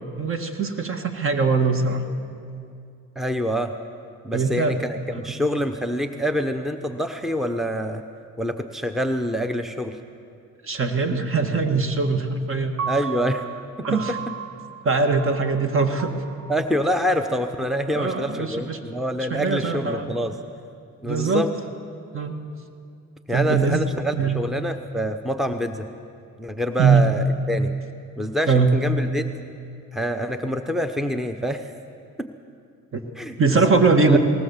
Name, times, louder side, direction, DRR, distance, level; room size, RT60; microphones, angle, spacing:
voice 1, 0.2-2.1 4.3-4.8 5.1-5.4 10.6-12.9 13.9-14.2 14.8-16.1 17.9-18.8 19.3-20.2 21.0-21.4 22.1-22.4 23.3-23.8 24.1-24.4 26.8-27.1 28.5-28.7 32.9-33.0 33.4-34.2, right 4 dB, 45° right, 7 dB, 1.9 m, -21 dB
voice 2, 3.2-3.7 4.2-8.0 8.4-10.0 12.9-13.5 13.8-14.2 16.5-20.4 21.0-21.5 23.3-25.9 26.4-27.7 28.2-29.3 29.9-31.7 32.2-32.3 33.2-33.4 34.0-34.2, equal, ahead, 8 dB, 0.9 m, -26 dB
Piano, 12.8-19.0, right 7 dB, 65° right, 1.1 m, -36 dB
19.5 x 19.0 x 7.3 m, 2.4 s
cardioid pair, 90°, 30 cm